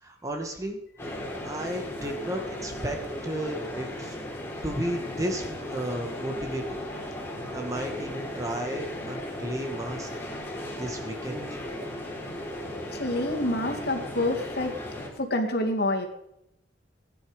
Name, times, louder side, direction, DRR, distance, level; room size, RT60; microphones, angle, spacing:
voice 1, 0.0-3.0 3.2-4.2 4.6-6.8 7.5-10.1 10.8-11.6, right 1 dB, 20° right, 3 dB, 1.9 m, -33 dB
sound 1, 1.0-15.1, left 1 dB, 15° left, 3.6 m, -36 dB
voice 2, 12.9-14.7 15.2-16.1, left 1 dB, 60° left, 2 dB, 2.6 m, -27 dB
18.5 x 10.5 x 5.3 m, 0.79 s
head